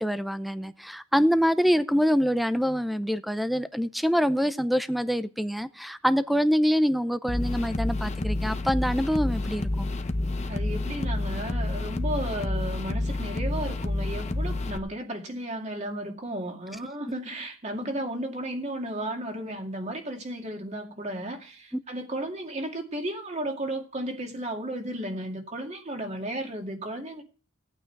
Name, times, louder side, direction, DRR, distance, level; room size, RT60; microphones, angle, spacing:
voice 1, 0.0-9.9, equal, ahead, 0.6 m, -25 dB
sound 1, 7.3-14.8, left 2 dB, 30° left, 0.9 m, -29 dB
voice 2, 10.5-27.2, right 1 dB, 30° right, 2.3 m, -34 dB
17.5 x 9.0 x 4.7 m
head